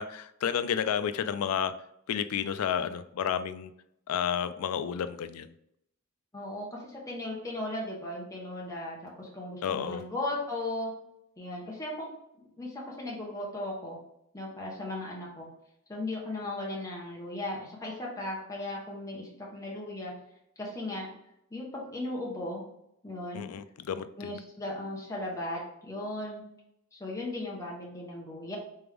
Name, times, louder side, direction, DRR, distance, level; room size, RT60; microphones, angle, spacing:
voice 1, 0.0-1.7 2.1-3.7 4.1-5.5 9.6-10.0 23.3-24.3, left 8 dB, 80° left, 12 dB, 0.3 m, -31 dB
voice 2, 6.3-10.9 11.4-12.1 12.4-14.0 14.3-15.5 15.9-20.1 20.6-21.1 21.5-22.6 23.0-23.5 24.2-26.4 26.9-28.6, left 1 dB, 15° left, -3 dB, 1.0 m, -37 dB
3.4 x 3.4 x 3.4 m, 0.77 s
head